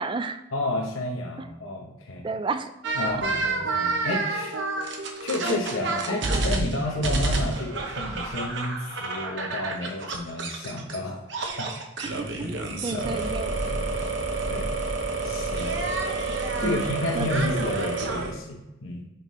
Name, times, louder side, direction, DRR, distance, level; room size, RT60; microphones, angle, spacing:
voice 1, 0.0-0.4 2.2-2.7 3.1-3.2 4.1-4.2 12.0-13.5 16.6-16.9 17.2-17.3, right 3 dB, 25° right, 10 dB, 0.3 m, -31 dB
voice 2, 0.5-2.3 2.9-4.6 5.2-11.3 11.6-11.7 12.4-12.6 12.9-13.3 13.6-14.2 14.5-14.7 15.2-15.8 16.6-19.1, left 1 dB, 85° left, 0 dB, 0.9 m, -31 dB
sound 1, 2.8-11.0 11.3-18.3, right 3 dB, 60° right, 0.9 m, -29 dB
5.9 x 5.3 x 3.0 m, 0.95 s
head